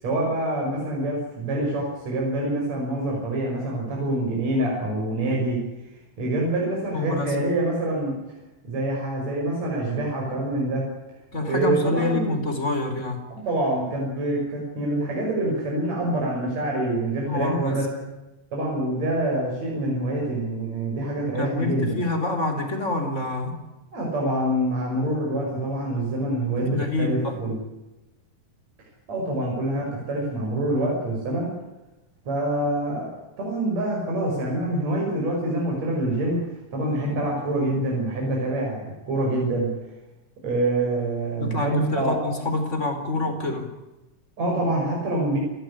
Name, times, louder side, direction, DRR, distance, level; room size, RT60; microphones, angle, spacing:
voice 1, 0.0-5.6 6.2-8.2 8.6-10.9 11.5-12.4 13.3-17.9 18.5-22.0 23.9-27.6 29.1-31.5 32.3-36.4 36.7-39.7 40.4-42.3 44.4-45.4, right 1 dB, 50° right, -2 dB, 6.9 m, -26 dB
voice 2, 6.9-7.3 11.3-13.2 17.2-18.1 21.3-23.6 26.6-27.4 41.4-43.7, left 2 dB, 20° left, 5 dB, 4.2 m, -27 dB
29.5 x 13.5 x 10.0 m, 1.0 s
omnidirectional pair, 3.8 m